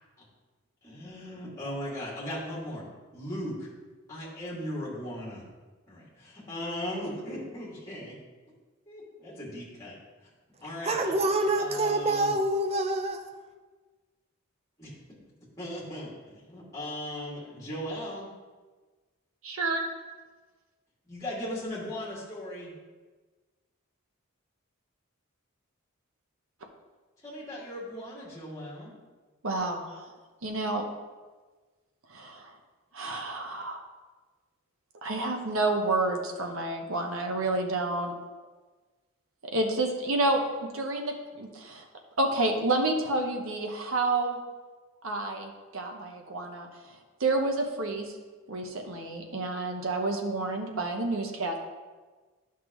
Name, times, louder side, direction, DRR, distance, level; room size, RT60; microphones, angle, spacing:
voice 1, 0.8-3.7 4.1-5.4 5.9-8.1 8.9-9.9 10.6-11.1 11.6-12.3 14.8-14.9 15.6-18.3 21.0-22.7 27.2-28.9, left 1 dB, 15° left, -7 dB, 2.5 m, -38 dB
voice 2, 10.8-13.3, right 2 dB, 30° right, 4 dB, 0.6 m, -26 dB
voice 3, 19.4-19.8 29.4-30.1 30.4-30.8 32.1-32.5 32.9-33.8 35.0-38.1 39.5-41.8 42.2-44.4 45.0-46.7 47.2-48.1 48.5-51.6, right 2 dB, 65° right, 3 dB, 1.1 m, -29 dB
11.5 x 5.9 x 3.1 m, 1.3 s
head